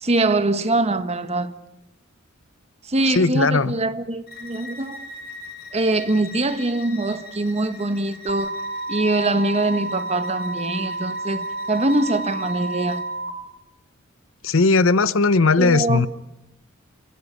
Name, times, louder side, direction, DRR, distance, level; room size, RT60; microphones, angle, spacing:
voice 1, 0.0-1.6 2.8-5.1 5.7-8.6 8.9-13.0 15.6-16.0, right 2 dB, 30° right, 1.2 m, -23 dB
voice 2, 3.1-3.7 14.4-16.1, left 3 dB, 70° left, 0.8 m, -18 dB
Bowed string instrument, 4.3-13.1, left 3 dB, 50° left, 4.2 m, -42 dB
sound 1, 8.3-13.3, right 2 dB, 45° right, 2.5 m, -30 dB
27.5 x 16.0 x 9.9 m
head